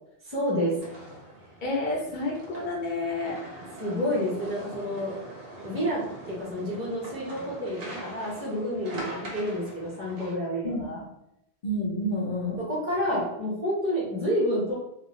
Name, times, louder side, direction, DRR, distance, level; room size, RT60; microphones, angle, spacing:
voice 1, 0.2-0.7 3.8-5.2 5.5-6.0 6.4-11.0 12.6-14.7, equal, 15° right, -6 dB, 0.8 m, -29 dB
sound 1, 0.8-10.3, right 1 dB, 70° right, 0.9 m, -42 dB
voice 2, 1.6-3.4 10.6-10.9 11.6-12.6, left 1 dB, 55° left, -1 dB, 0.6 m, -29 dB
2.5 x 2.3 x 3.0 m, 0.82 s
omnidirectional pair, 1.1 m